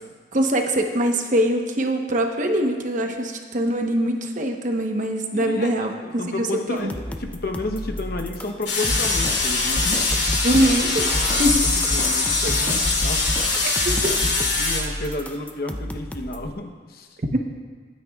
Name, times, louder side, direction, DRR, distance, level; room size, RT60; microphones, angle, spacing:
voice 1, 0.3-6.9 10.4-11.6 13.6-14.1 17.3-17.4, right 1 dB, 45° right, 3 dB, 1.0 m, -23 dB
voice 2, 5.3-5.7 6.0-10.0 11.6-13.3 14.2-14.3 14.6-17.2, left 1 dB, 60° left, 4 dB, 0.9 m, -31 dB
sound 1, 6.8-16.5, left 1 dB, 10° left, 0.5 m, -35 dB
Bertoia Sounding Sculpture - Chicago, 8.7-14.8, left 3 dB, 80° left, 2.4 m, -22 dB
Snare drum, 8.9-14.4, equal, 25° left, 1.7 m, -28 dB
21.0 x 9.3 x 2.4 m, 1.5 s
head